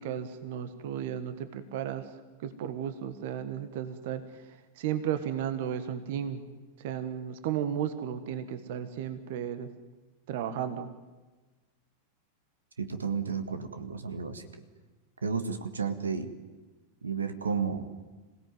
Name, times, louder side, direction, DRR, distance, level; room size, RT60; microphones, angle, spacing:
voice 1, 0.0-2.1 2.4-4.4 4.8-6.4 6.8-9.7 10.3-10.9, right 9 dB, 50° right, 11 dB, 1.6 m, -34 dB
voice 2, 12.8-14.5 15.2-16.3 17.0-17.9, right 5 dB, 75° right, 10 dB, 1.7 m, -32 dB
27.0 x 17.5 x 9.4 m, 1.2 s
figure-of-eight pair, 90°, 0 cm